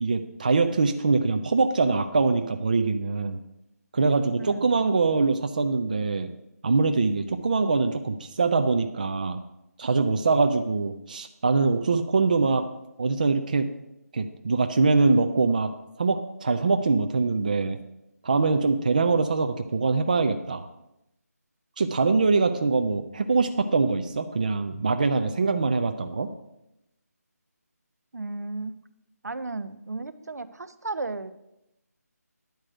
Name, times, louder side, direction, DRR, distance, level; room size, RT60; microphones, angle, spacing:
voice 1, 0.0-3.4 3.9-6.3 6.6-9.4 9.8-12.6 13.0-13.7 14.1-17.8 18.2-20.7 21.8-26.3, right 4 dB, 30° right, 7 dB, 0.4 m, -23 dB
voice 2, 4.4-4.7 28.1-28.7 29.2-31.3, right 3 dB, 75° right, 12 dB, 0.8 m, -34 dB
10.5 x 4.9 x 7.7 m, 0.87 s
figure-of-eight pair, 170°, 9 cm